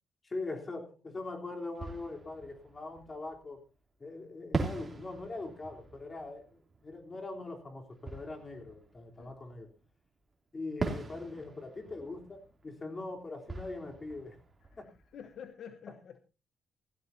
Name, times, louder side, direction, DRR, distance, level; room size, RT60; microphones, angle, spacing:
voice 1, 0.2-3.6 4.0-9.7 10.5-14.4 14.8-14.9, left 2 dB, 30° left, 3.5 m, -42 dB
Fireworks, 1.1-1.2 1.7-3.7 4.5-9.9 10.8-15.5, right 3 dB, 30° right, 2.9 m, -42 dB
voice 2, 15.1-16.2, left 8 dB, 65° left, 1.1 m, -48 dB
17.0 x 15.5 x 2.7 m
cardioid pair, 90°, 0 cm